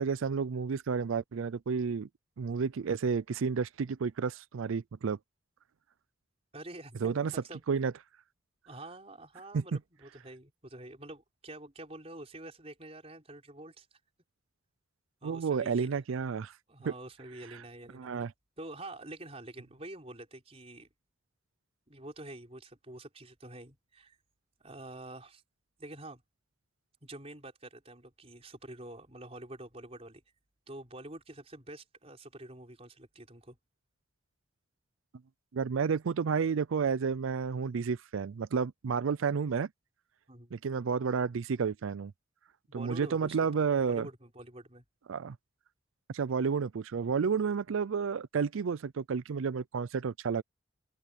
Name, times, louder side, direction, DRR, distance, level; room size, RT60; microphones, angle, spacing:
voice 1, 0.0-2.1 2.4-5.2 7.0-7.3 7.7-7.9 9.5-9.6 15.2-16.5 16.9-17.0 17.9-18.3 35.5-39.7 40.5-42.1 42.7-44.1 45.1-45.4 46.1-50.4, right 5 dB, 80° right, 0.4 m, -31 dB
voice 2, 6.5-7.6 8.7-14.0 15.2-16.0 16.7-18.1 18.6-20.9 21.9-24.2 24.6-25.4 25.8-26.2 27.0-30.2 30.7-33.6 40.3-40.6 42.7-44.8, right 1 dB, 30° right, 4.7 m, -47 dB
open air
head